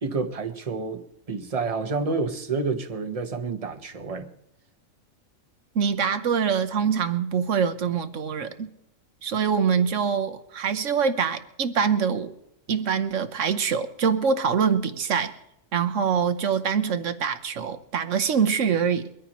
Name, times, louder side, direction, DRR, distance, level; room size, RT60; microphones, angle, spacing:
voice 1, 0.0-4.3, right 4 dB, 30° right, 7 dB, 1.1 m, -29 dB
voice 2, 5.7-8.7 9.2-12.3 12.7-15.4 15.7-19.1, right 6 dB, 65° right, 8 dB, 1.4 m, -24 dB
23.0 x 14.5 x 3.1 m, 0.80 s
omnidirectional pair, 1.4 m